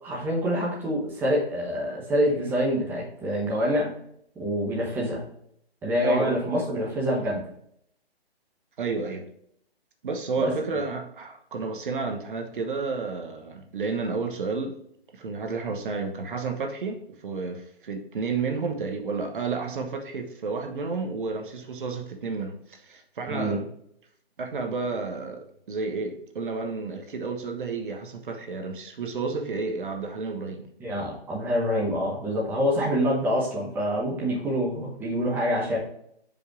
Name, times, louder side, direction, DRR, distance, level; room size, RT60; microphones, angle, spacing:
voice 1, 0.0-3.9 4.4-5.2 5.8-7.4 10.4-10.5 23.3-23.6 30.8-35.8, equal, 5° right, 1.1 m, -26 dB
voice 2, 6.0-6.4 8.8-9.3 10.0-14.8 15.1-23.7 24.4-30.7, right 4 dB, 55° right, 1.1 m, -31 dB
6.2 x 5.4 x 3.7 m
hypercardioid pair, 150°, 31 cm